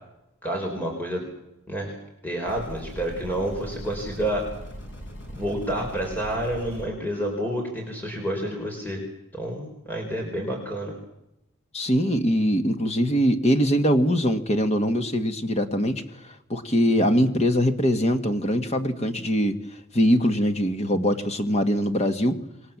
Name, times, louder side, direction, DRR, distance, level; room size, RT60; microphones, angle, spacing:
voice 1, 0.4-1.3 1.7-1.9 2.2-4.4 5.3-9.0 9.3-10.9, right 1 dB, 10° left, 0 dB, 4.8 m, -29 dB
sound 1, 2.5-6.9, equal, 60° left, 7.0 m, -39 dB
voice 2, 11.7-16.0 16.5-19.6 19.9-22.4, equal, 30° left, 7 dB, 1.7 m, -22 dB
27.5 x 21.5 x 7.4 m, 0.87 s
head